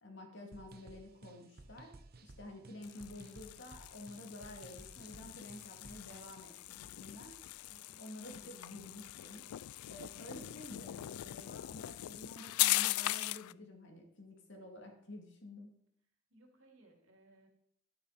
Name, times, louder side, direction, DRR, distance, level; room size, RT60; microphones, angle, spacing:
voice 1, 0.0-1.9 2.2-7.7 8.0-9.4 9.9-15.7, left 1 dB, 55° left, 2 dB, 2.3 m, -50 dB
sound 1, 0.5-6.2, right 2 dB, 45° right, 0.8 m, -56 dB
sound 2, 2.8-13.5, left 17 dB, 85° left, 0.3 m, -39 dB
voice 2, 7.7-8.0 16.3-17.5, right 2 dB, 65° right, 2 dB, 2.6 m, -63 dB
11.5 x 9.4 x 4.2 m, 0.68 s
head